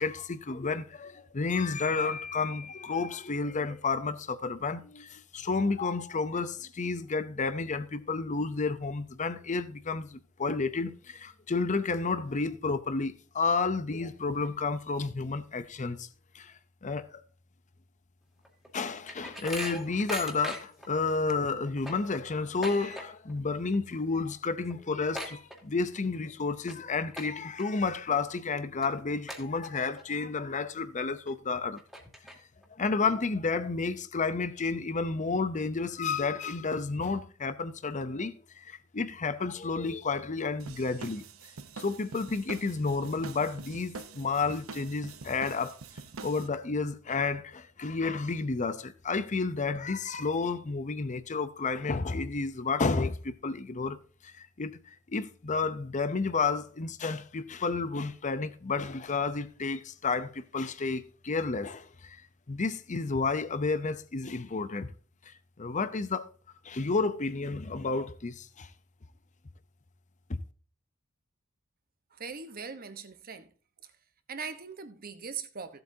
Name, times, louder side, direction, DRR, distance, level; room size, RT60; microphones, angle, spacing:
voice 1, 0.0-16.1 16.3-16.5 16.8-17.2 18.7-31.8 32.8-41.2 41.8-45.8 46.2-54.0 54.2-62.2 62.5-64.9 65.3-66.3 66.6-68.7 70.3-70.4, left 4 dB, 35° left, 0.7 m, -31 dB
sound 1, 18.4-20.9 21.3-21.4 21.7-23.4 23.6-24.0 24.3-24.4 24.7-26.1 26.5-26.7 27.1-27.6 28.1-28.2 28.8-28.9 29.3-30.0 30.4-30.5 31.3-31.4 31.8-32.7, equal, ahead, 2.1 m, -40 dB
sound 2, 40.6-46.5, right 4 dB, 90° right, 0.9 m, -45 dB
voice 2, 72.1-73.5 73.8-73.9 74.3-75.8, right 5 dB, 45° right, 1.1 m, -40 dB
15.5 x 7.9 x 2.8 m
head